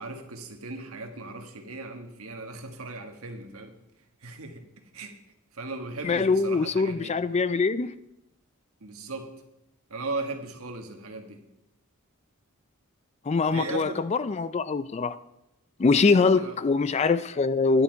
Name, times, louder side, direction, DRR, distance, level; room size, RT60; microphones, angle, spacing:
voice 1, 0.0-3.7 4.2-5.1 5.5-7.1 8.8-9.3 9.9-11.4 13.5-14.0 16.1-16.6, right 2 dB, 75° right, 1.5 m, -37 dB
voice 2, 6.0-7.9 13.3-15.2 15.8-17.8, left 4 dB, 30° left, 0.4 m, -23 dB
11.0 x 9.9 x 4.6 m
head